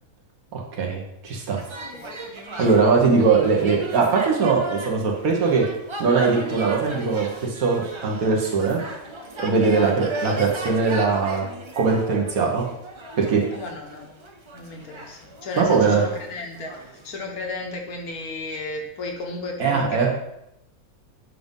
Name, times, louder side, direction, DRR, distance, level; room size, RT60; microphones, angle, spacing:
voice 1, 0.5-1.6 2.6-5.7 6.0-8.8 9.4-11.4 11.8-12.6 13.2-13.4 15.6-16.0 19.6-20.1, right 4 dB, 75° right, 0 dB, 1.6 m, -21 dB
sound 1, 1.6-17.1, right 1 dB, 40° right, 0.4 m, -37 dB
voice 2, 13.5-14.2 14.5-20.1, left 2 dB, 90° left, 2 dB, 1.5 m, -34 dB
7.7 x 2.6 x 5.3 m, 0.82 s
omnidirectional pair, 1.5 m